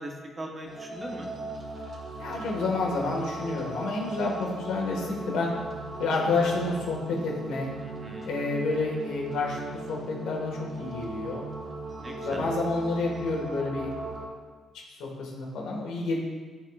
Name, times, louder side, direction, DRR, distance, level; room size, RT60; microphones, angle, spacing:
voice 1, 0.0-1.3 7.8-8.3 12.0-12.5, right 1 dB, 25° right, 1 dB, 1.1 m, -40 dB
sound 1, 0.6-14.3, right 2 dB, 40° right, 1.5 m, -38 dB
voice 2, 2.2-5.5 6.0-7.7 8.2-9.6 9.9-11.5 12.2-13.9 14.2-14.3 14.9-16.2, left 3 dB, 90° left, -1 dB, 1.7 m, -29 dB
13.5 x 4.7 x 2.5 m, 1.4 s
cardioid pair, 105°, 0 cm